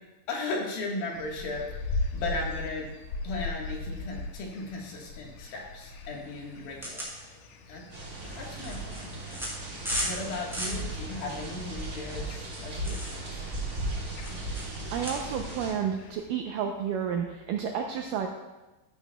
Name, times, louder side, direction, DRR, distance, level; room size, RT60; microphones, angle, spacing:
voice 1, 0.3-2.9 3.2-7.1 7.7-7.8 8.4-9.1 10.0-13.4, left 3 dB, 70° left, -1 dB, 3.2 m, -36 dB
sound 1, 1.1-16.3, left 2 dB, 90° left, 1.6 m, -40 dB
sound 2, 6.8-15.1, equal, ahead, 3.0 m, -38 dB
sound 3, 7.9-15.7, right 2 dB, 35° right, 1.4 m, -37 dB
voice 2, 14.9-18.3, right 7 dB, 80° right, 2 dB, 1.9 m, -31 dB
12.5 x 12.0 x 2.3 m, 1.1 s
omnidirectional pair, 4.6 m